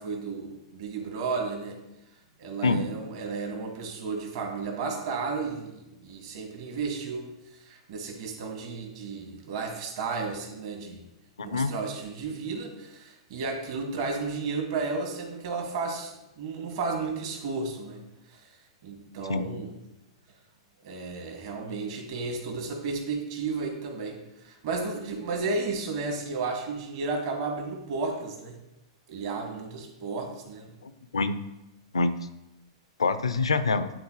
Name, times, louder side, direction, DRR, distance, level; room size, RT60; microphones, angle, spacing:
voice 1, 0.0-1.8 2.4-7.3 7.6-11.0 11.4-18.0 18.3-18.5 18.8-19.7 20.8-28.6 29.1-30.7, right 4 dB, 60° right, 2 dB, 2.0 m, -33 dB
voice 2, 11.4-11.7 19.3-19.5 30.8-31.4 31.9-32.2 33.0-33.9, left 3 dB, 85° left, 12 dB, 0.5 m, -26 dB
11.5 x 4.0 x 3.1 m, 0.91 s
hypercardioid pair, 110°, 3 cm